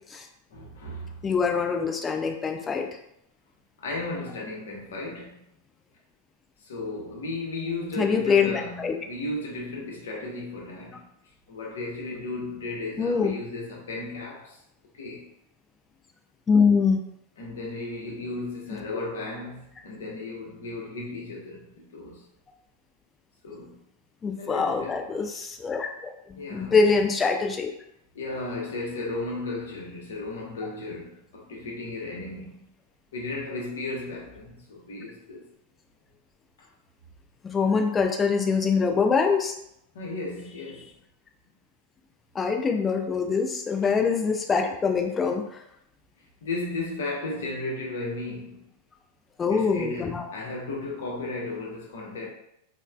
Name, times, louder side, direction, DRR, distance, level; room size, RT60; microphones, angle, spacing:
voice 1, 0.5-1.2 3.8-5.4 6.6-11.1 11.5-14.6 14.9-15.3 17.4-22.3 23.4-23.8 24.4-25.0 26.4-26.8 28.1-32.7 33.1-35.4 39.9-40.9 46.4-48.7 49.5-52.3, left 2 dB, 60° left, 0.7 m, -35 dB
voice 2, 1.2-2.9 8.0-9.0 13.0-13.3 16.5-17.0 24.2-26.1 26.5-27.7 37.5-39.5 42.4-45.6 49.4-50.2, left 5 dB, 20° left, 0.3 m, -24 dB
3.1 x 2.0 x 2.3 m
figure-of-eight pair, 90°, 0 cm